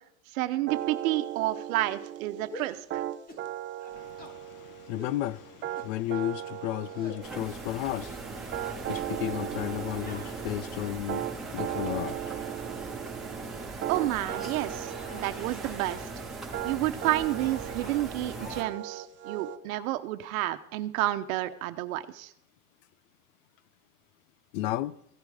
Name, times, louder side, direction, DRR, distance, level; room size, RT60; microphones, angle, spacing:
voice 1, 0.3-3.0 13.9-16.1 16.6-22.3, right 15 dB, 65° right, 1.2 m, -30 dB
sound 1, 0.7-19.6, right 12 dB, 25° right, 0.7 m, -38 dB
sound 2, 2.5-2.8 3.3-3.5 3.8-4.4 5.0-5.2 5.8-6.3 6.9-7.2 7.8-8.3 8.6-8.9 10.0-11.1 11.6-12.1 12.8-13.0 13.4-13.6 14.1-15.4 15.6-15.9 16.8-17.1 17.3-18.1 18.4-18.7, left 1 dB, 20° left, 2.0 m, -48 dB
voice 2, 3.9-12.7 24.5-25.0, left 14 dB, 55° left, 0.7 m, -34 dB
sound 3, 7.2-18.6, right 3 dB, ahead, 3.0 m, -39 dB
16.0 x 10.5 x 5.0 m
supercardioid pair, 120°, 45 cm